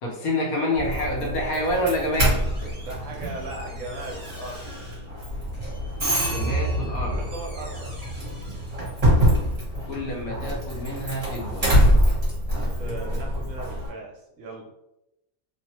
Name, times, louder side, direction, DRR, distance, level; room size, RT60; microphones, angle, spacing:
voice 1, 0.0-2.4 6.2-7.2 9.9-11.9, left 1 dB, 80° left, -1 dB, 1.2 m, -28 dB
Doorbell, 0.7-13.9, equal, 30° right, 0.9 m, -25 dB
voice 2, 2.8-4.6 7.1-7.9 12.5-14.7, right 2 dB, 65° right, -1 dB, 0.9 m, -38 dB
2.7 x 2.1 x 2.8 m, 0.87 s
omnidirectional pair, 1.6 m